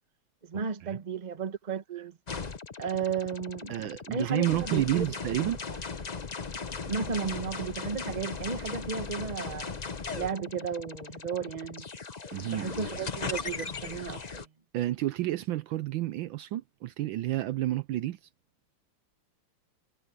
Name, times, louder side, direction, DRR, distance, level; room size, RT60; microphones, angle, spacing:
voice 1, 0.4-2.2 2.8-3.7 4.1-5.1 6.9-9.8 10.1-11.8 12.4-14.5, right 6 dB, 25° right, 1.0 m, -34 dB
sound 1, 2.3-14.5, left 5 dB, 45° left, 0.5 m, -38 dB
voice 2, 3.7-5.6 12.3-12.9 14.7-18.2, right 15 dB, 75° right, 1.3 m, -30 dB
omnidirectional pair, 2.4 m